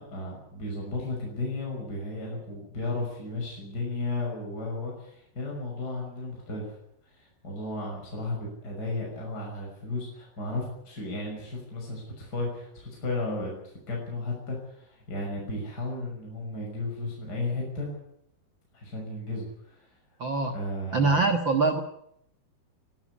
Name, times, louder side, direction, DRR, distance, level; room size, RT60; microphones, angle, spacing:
voice 1, 0.0-6.8 7.0-13.5 13.9-17.9 18.7-19.9 20.5-21.2, left 2 dB, 25° left, -2 dB, 6.5 m, -34 dB
voice 2, 20.2-20.5 20.9-21.8, right 3 dB, 80° right, 7 dB, 1.0 m, -23 dB
23.5 x 13.0 x 9.9 m, 0.74 s
omnidirectional pair, 4.6 m